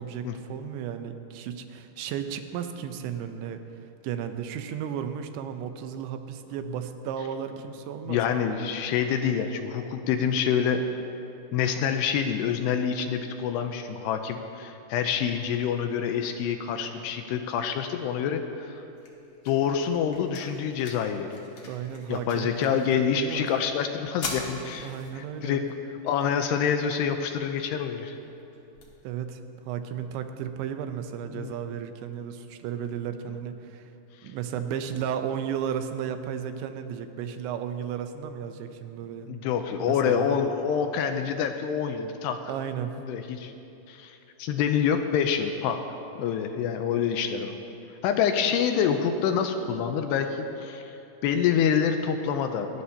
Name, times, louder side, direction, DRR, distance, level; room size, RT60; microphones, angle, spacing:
voice 1, 0.0-3.6 4.0-8.2 21.6-23.5 24.8-25.6 29.0-33.9 34.2-39.3 39.8-40.3 42.5-42.9, right 8 dB, 85° right, 8 dB, 3.1 m, -34 dB
voice 2, 8.1-10.8 11.5-18.8 19.5-21.4 22.1-25.6 26.0-28.2 31.3-31.5 34.2-34.3 39.3-42.4 43.1-43.5 43.9-45.8 46.2-47.5 48.0-51.0 51.2-52.8, left 7 dB, 85° left, 6 dB, 2.6 m, -27 dB
sound 1, 18.4-30.4, left 3 dB, 50° left, 2.0 m, -45 dB
29.0 x 12.5 x 2.9 m, 2.8 s
omnidirectional pair, 5.1 m